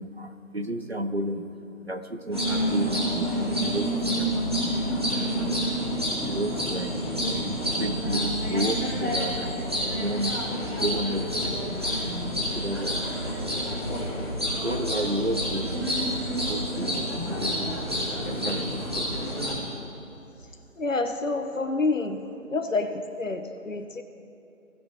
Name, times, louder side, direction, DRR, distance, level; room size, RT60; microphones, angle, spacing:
voice 1, 0.0-1.5 1.8-4.8 6.2-7.5 7.8-9.5 10.0-10.4 10.7-13.1 14.6-15.8 16.5-17.8 18.2-19.1, right 1 dB, 45° right, 8 dB, 0.7 m, -32 dB
sound 1, 2.3-19.5, equal, 20° right, 1.7 m, -28 dB
voice 2, 20.8-22.2 22.5-24.0, left 3 dB, 65° left, 7 dB, 1.1 m, -28 dB
18.5 x 6.9 x 3.1 m, 2.7 s
figure-of-eight pair, 175°, 42 cm